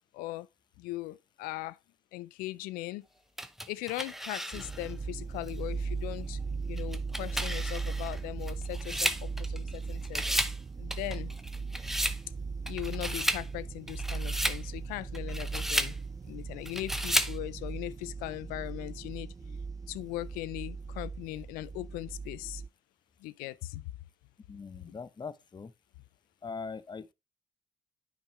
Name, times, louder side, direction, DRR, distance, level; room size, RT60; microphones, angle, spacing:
voice 1, 0.1-0.5 0.8-1.8 2.1-3.0 3.7-6.4 6.7-10.2 10.8-11.3 12.7-16.0 16.3-19.3 19.9-22.6 23.2-23.9, left 17 dB, 85° left, 0.5 m, -39 dB
sound 1, 3.4-4.9 5.5-5.6 6.8-9.8 10.0-10.6 10.9-12.2 12.7-13.5 13.9-14.6 15.1-16.0 16.7-17.4, equal, ahead, 0.8 m, -33 dB
sound 2, 4.5-22.7, right 4 dB, 25° right, 0.4 m, -38 dB
voice 2, 24.5-25.7 26.4-27.1, left 5 dB, 30° left, 0.8 m, -41 dB
9.2 x 5.2 x 3.1 m
supercardioid pair, 60°, 15 cm